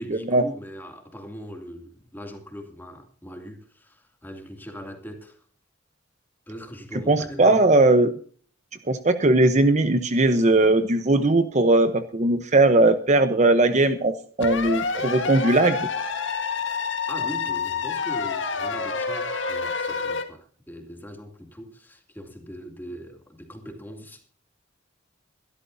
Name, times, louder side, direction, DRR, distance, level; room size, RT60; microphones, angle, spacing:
voice 1, 0.0-5.4 6.5-7.7 17.1-24.3, equal, 10° left, 2.6 m, -40 dB
voice 2, 7.1-8.1 8.9-15.9, right 2 dB, 35° right, 0.9 m, -19 dB
sound 1, 14.4-20.2, left 5 dB, 70° left, 1.8 m, -28 dB
22.5 x 12.5 x 2.7 m
head